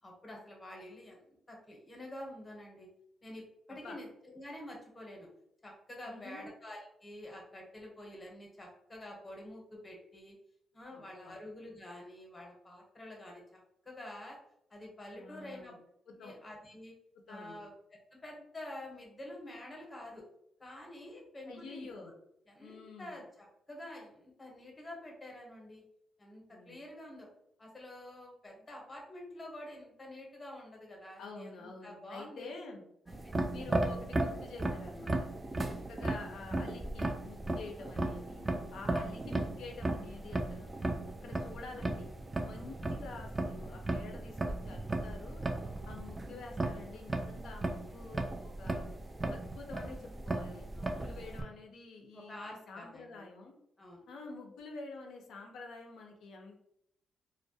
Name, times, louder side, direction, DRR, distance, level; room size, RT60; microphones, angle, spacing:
voice 1, 0.0-2.9 3.2-5.3 5.6-10.4 10.7-14.4 14.7-15.7 16.1-16.9 17.3-17.7 18.1-20.2 20.6-22.1 22.5-25.8 26.2-27.3 27.6-32.5 33.1-33.6 42.5-42.7 45.6-46.0 50.7-51.4 52.1-53.3 53.8-54.1, left 1 dB, 25° left, -1 dB, 0.7 m, -48 dB
voice 2, 6.1-6.4 10.9-11.4 15.1-15.8 16.1-16.3 17.3-17.6 21.5-22.1 22.6-23.2 26.5-26.8 31.2-32.8 33.5-35.3 35.9-40.7 41.2-42.1 42.4-45.4 45.9-48.9 49.3-53.5 54.1-56.6, left 3 dB, 80° left, 2 dB, 0.5 m, -48 dB
sound 1, 33.1-51.4, right 2 dB, 20° right, 0.3 m, -36 dB
2.2 x 2.0 x 2.6 m, 0.75 s
cardioid pair, 100°, 0 cm